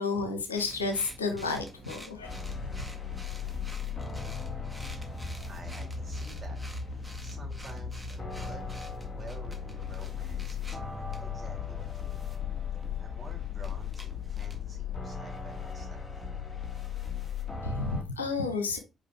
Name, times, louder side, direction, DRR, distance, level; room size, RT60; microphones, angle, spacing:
voice 1, 0.0-2.4 17.6-18.8, left 4 dB, 90° left, 0.8 m, -31 dB
sound 1, 0.6-15.0, equal, 5° right, 1.6 m, -48 dB
sound 2, 2.2-18.0, left 6 dB, 25° left, 2.3 m, -37 dB
voice 2, 4.9-6.6 6.9-10.8 11.2-12.3 13.0-16.5, right 2 dB, 35° right, 3.5 m, -50 dB
4.9 x 4.9 x 4.5 m
figure-of-eight pair, 40°, 0 cm